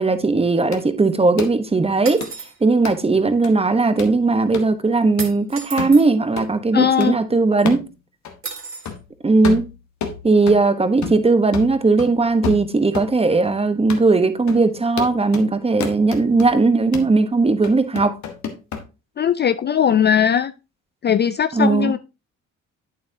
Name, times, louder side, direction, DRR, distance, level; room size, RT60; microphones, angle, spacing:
voice 1, 0.0-2.3 2.6-7.8 9.2-9.6 10.2-18.2 21.5-21.9, right 3 dB, 20° right, 1.0 m, -18 dB
sound 1, 0.7-0.9 1.4-1.6 2.2-2.3 2.8-3.0 3.4-3.5 4.0-4.2 4.5-4.7 5.2-5.3 5.8-6.0 6.4-6.5 7.0-7.1 7.7-7.9 8.2-8.4 8.9-9.1 9.4-10.7 11.0-11.3 11.5-13.1 13.4-13.5 13.9-14.1 14.5-14.6 15.0-15.5 15.8-16.5 16.9-17.1 17.6-18.8, left 6 dB, 65° left, 1.5 m, -30 dB
sound 2, 2.1-2.6 5.2-6.1 8.4-8.9, right 5 dB, 45° right, 2.4 m, -33 dB
voice 2, 6.7-7.2 19.2-20.5 21.0-22.0, left 8 dB, 35° left, 0.4 m, -18 dB
8.6 x 7.5 x 2.8 m
cardioid pair, 90°, 30 cm